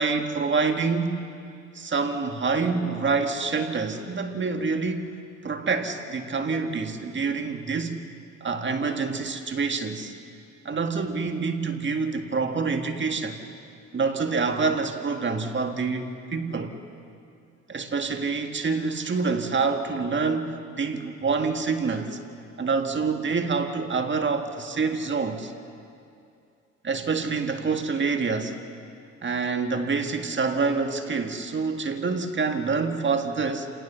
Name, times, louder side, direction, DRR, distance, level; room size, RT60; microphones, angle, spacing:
voice 1, 0.0-1.3 1.7-5.1 5.4-8.0 8.4-10.1 10.7-13.4 13.9-16.8 17.7-22.2 22.6-25.5 26.8-28.6 29.2-33.7, right 4 dB, 40° right, 6 dB, 1.8 m, -26 dB
29.0 x 18.5 x 6.9 m, 2.4 s
cardioid pair, 90°, 30 cm